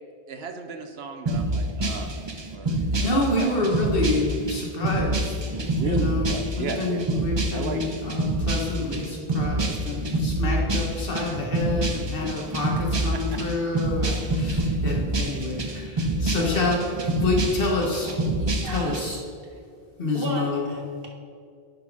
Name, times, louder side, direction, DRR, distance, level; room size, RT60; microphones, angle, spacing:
voice 1, 0.3-2.2 2.5-4.0 5.8-7.1 7.5-7.9 13.1-13.2 14.5-14.6 16.3-16.6, right 4 dB, 80° right, 1.0 m, -35 dB
sound 1, 1.3-19.0, right 1 dB, 30° right, 0.6 m, -27 dB
voice 2, 2.7-5.5 5.8-18.1 18.7-19.2 20.0-20.7, left 2 dB, 65° left, 1.5 m, -28 dB
voice 3, 18.0-19.1 20.1-21.1, right 2 dB, 65° right, 1.4 m, -35 dB
10.5 x 4.0 x 4.8 m
omnidirectional pair, 1.0 m